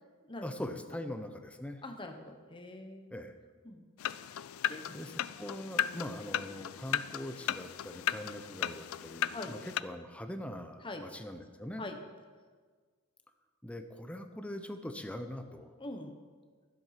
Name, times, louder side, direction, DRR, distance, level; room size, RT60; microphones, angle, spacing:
voice 1, 0.4-1.8 3.1-3.3 4.9-11.8 13.6-15.7, left 1 dB, 5° left, 7 dB, 0.7 m, -42 dB
voice 2, 1.8-3.1 3.6-3.9 4.7-4.8 9.3-9.5 10.8-11.0 11.8-12.0 15.8-16.2, left 2 dB, 25° left, 4 dB, 1.1 m, -43 dB
sound 1, 4.0-9.8, left 10 dB, 80° left, 0.4 m, -36 dB
12.5 x 7.8 x 5.9 m, 1.5 s
head